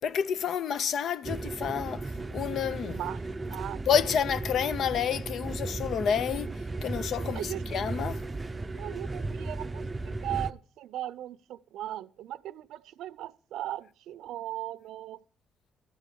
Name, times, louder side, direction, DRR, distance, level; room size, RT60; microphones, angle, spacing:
voice 1, 0.0-3.0 3.9-6.5 6.8-8.2, left 8 dB, 70° left, 0.5 m, -29 dB
sound 1, 1.2-10.5, right 2 dB, 20° right, 0.5 m, -35 dB
voice 2, 3.5-3.9 7.2-7.8 8.7-15.2, right 13 dB, 85° right, 0.5 m, -38 dB
13.5 x 4.6 x 8.5 m
cardioid pair, 90°, 0 cm